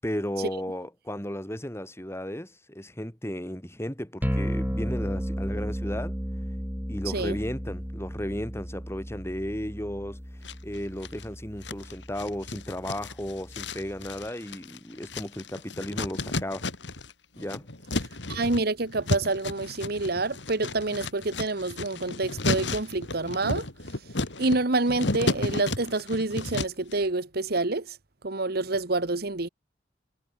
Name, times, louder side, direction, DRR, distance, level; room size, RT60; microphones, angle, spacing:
voice 1, 0.0-6.2 6.9-10.2 10.6-16.7 17.4-17.7, equal, 15° left, 6.2 m, -34 dB
sound 1, 4.2-14.3, equal, 10° right, 5.9 m, -34 dB
voice 2, 7.1-7.4 18.3-23.7 24.4-28.0 28.2-29.5, right 2 dB, 60° right, 1.5 m, -27 dB
sound 2, 10.4-11.2 11.6-17.1 17.4-26.9, left 2 dB, 75° left, 2.8 m, -33 dB
head